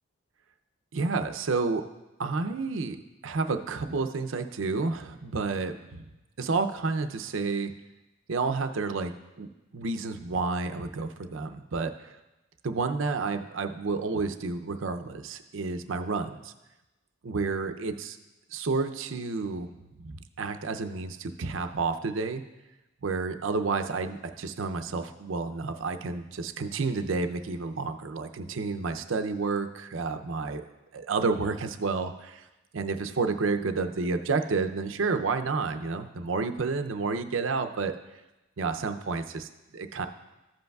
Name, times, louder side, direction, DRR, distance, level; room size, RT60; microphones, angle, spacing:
voice 1, 0.9-1.8 2.2-3.0 3.2-6.0 6.4-7.7 8.3-9.1 9.4-9.5 9.7-12.1 12.6-16.5 17.2-18.2 18.5-19.7 20.0-22.4 23.0-30.6 30.9-32.4 32.7-38.0 38.6-40.1, right 4 dB, 65° right, 8 dB, 0.6 m, -30 dB
14.5 x 7.8 x 2.3 m, 1.0 s
head